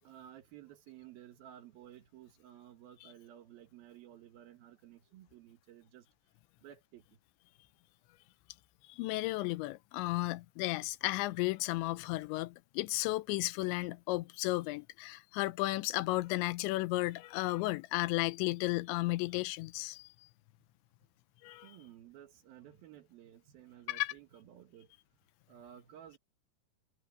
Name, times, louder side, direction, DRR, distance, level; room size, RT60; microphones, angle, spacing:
voice 1, 0.0-6.1 6.6-7.2 21.6-24.9 25.5-26.2, right 11 dB, 65° right, 3.0 m, -55 dB
voice 2, 8.9-20.1 21.4-21.7 23.9-24.1, left 19 dB, 90° left, 3.0 m, -34 dB
omnidirectional pair, 5.1 m